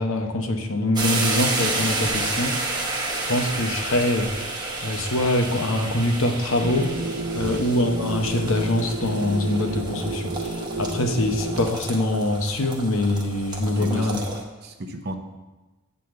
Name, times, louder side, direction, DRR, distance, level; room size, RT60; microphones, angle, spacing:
voice 1, 0.0-2.6 3.3-6.9 7.3-14.2, left 1 dB, 70° left, 4 dB, 0.9 m, -24 dB
sound 1, 1.0-14.4, right 2 dB, 20° right, 0.9 m, -31 dB
sound 2, 6.6-11.7, right 2 dB, 75° right, 1.1 m, -30 dB
voice 2, 13.8-14.2 14.6-15.1, right 1 dB, 50° right, 5 dB, 0.7 m, -34 dB
7.9 x 4.1 x 6.7 m, 1.2 s
head